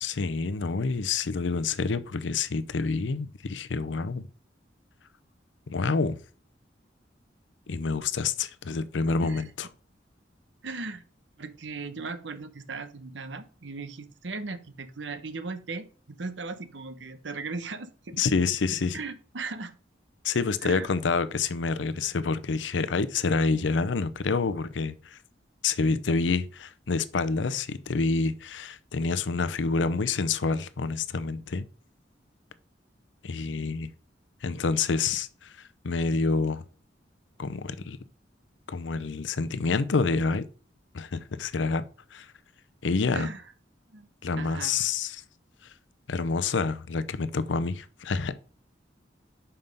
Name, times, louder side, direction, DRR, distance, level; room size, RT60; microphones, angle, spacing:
voice 1, 0.0-4.3 5.7-6.2 7.7-9.7 18.2-19.0 20.2-25.2 25.6-31.6 33.2-33.9 34.4-35.5 35.8-36.6 37.4-38.0 38.7-40.4 40.9-41.8 42.1-42.3 42.8-43.3 44.2-45.2 46.1-48.3, left 4 dB, 85° left, 0.6 m, -27 dB
voice 2, 10.6-11.0 11.4-18.2 18.9-19.7 20.6-20.9 37.6-37.9 43.1-43.4 43.9-44.1 44.3-44.7, right 4 dB, 80° right, 0.9 m, -38 dB
5.6 x 5.6 x 5.2 m
head